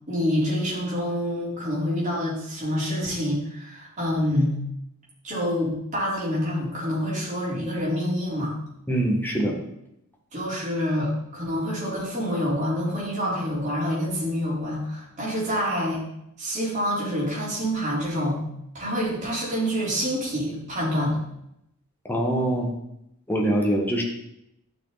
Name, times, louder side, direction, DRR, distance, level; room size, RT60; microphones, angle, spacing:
voice 1, 0.1-4.6 5.2-8.5 10.3-16.0 16.4-18.4 18.7-21.2, equal, 35° right, -7 dB, 4.2 m, -27 dB
voice 2, 8.9-9.6 22.0-22.7 23.3-24.0, right 1 dB, 10° left, -1 dB, 1.5 m, -23 dB
12.0 x 6.3 x 4.1 m, 0.80 s
head